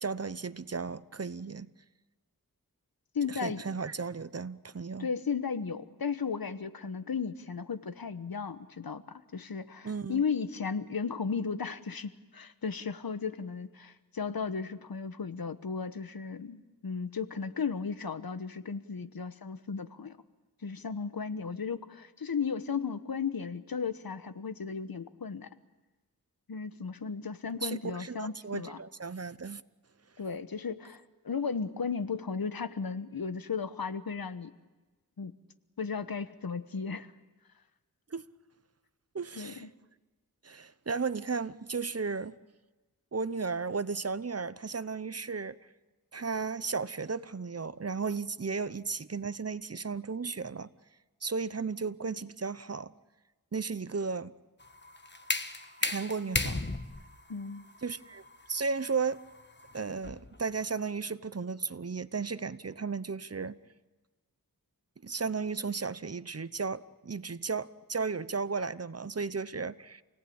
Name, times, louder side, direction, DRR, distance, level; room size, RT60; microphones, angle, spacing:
voice 1, 0.0-1.7 3.3-5.1 9.8-10.2 27.6-29.6 38.1-38.3 39.1-39.7 40.4-42.4 43.1-45.6 46.1-50.7 51.2-52.9 53.5-54.3 55.8-56.7 57.8-58.2 58.5-59.2 59.7-63.6 65.0-70.0, right 4 dB, 45° right, 0.8 m, -34 dB
voice 2, 3.1-3.6 5.0-20.2 20.6-25.5 26.5-28.8 30.2-34.5 35.2-35.3 35.8-37.1 39.3-39.7 57.3-57.7, left 5 dB, 80° left, 1.1 m, -35 dB
sound 1, 54.6-60.4, left 2 dB, 30° left, 1.3 m, -36 dB
28.0 x 18.0 x 8.7 m
wide cardioid pair, 55°, 36 cm